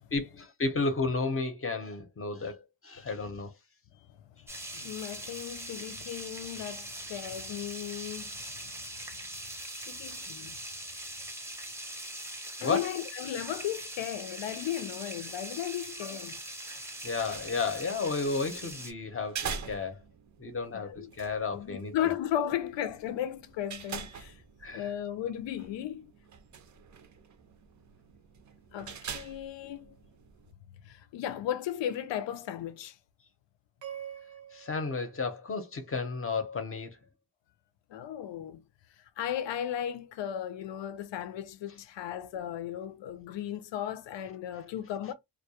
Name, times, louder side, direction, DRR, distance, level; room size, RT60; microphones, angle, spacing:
voice 1, 0.1-3.5 10.0-10.2 12.6-12.9 16.0-16.2 17.0-20.0 20.4-22.1 24.6-24.9 34.5-37.0, left 4 dB, 30° left, 0.7 m, -33 dB
sound 1, 4.5-18.9, right 1 dB, 5° right, 0.6 m, -42 dB
voice 2, 4.7-8.7 9.9-10.6 12.6-16.4 20.7-21.1 21.5-24.4 24.7-26.1 28.7-29.9 30.8-33.0 37.9-38.6 39.2-45.1, left 11 dB, 80° left, 0.5 m, -35 dB
sound 2, 17.0-30.5, right 6 dB, 45° right, 0.5 m, -45 dB
sound 3, 33.8-36.2, right 9 dB, 90° right, 0.8 m, -46 dB
2.2 x 2.1 x 2.7 m
cardioid pair, 95°, 43 cm